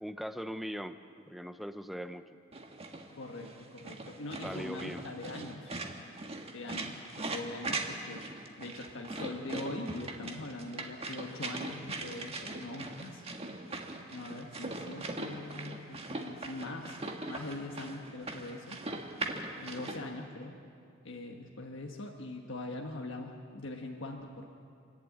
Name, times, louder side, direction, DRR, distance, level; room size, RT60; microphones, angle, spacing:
voice 1, 0.0-2.2 4.4-5.1, equal, ahead, 10 dB, 0.6 m, -40 dB
sound 1, 2.5-20.0, right 2 dB, 30° right, 1.6 m, -40 dB
voice 2, 3.1-5.7 6.5-13.2 14.1-18.8 19.6-20.6 21.0-24.5, left 2 dB, 65° left, 1 dB, 1.4 m, -42 dB
27.5 x 11.5 x 9.0 m, 2.4 s
head